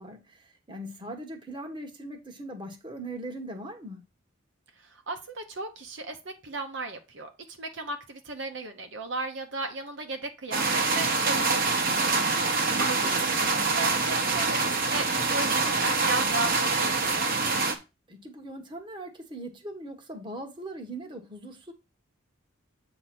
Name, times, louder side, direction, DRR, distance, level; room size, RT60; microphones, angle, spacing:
voice 1, 0.0-4.0 12.7-13.3 18.1-21.7, right 1 dB, 25° right, 1.2 m, -40 dB
voice 2, 4.8-12.7 13.0-13.3 13.6-17.2, right 2 dB, 65° right, 1.0 m, -36 dB
sound 1, 10.5-17.7, right 3 dB, 45° right, 1.1 m, -25 dB
8.2 x 3.0 x 5.9 m
head